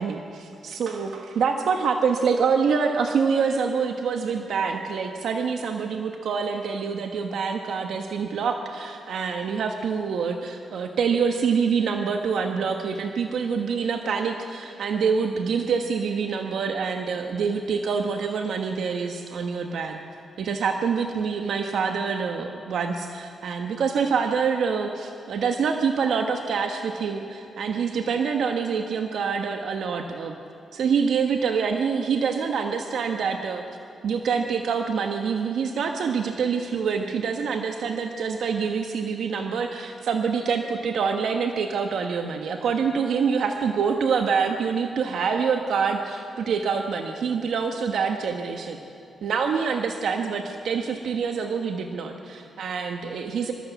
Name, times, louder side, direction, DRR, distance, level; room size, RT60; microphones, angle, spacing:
voice 1, 0.0-20.0 20.4-30.3 30.7-33.6 34.0-48.8 49.2-53.5, right 6 dB, 75° right, 4 dB, 1.2 m, -26 dB
24.0 x 14.0 x 8.1 m, 2.8 s
cardioid pair, 105°, 0 cm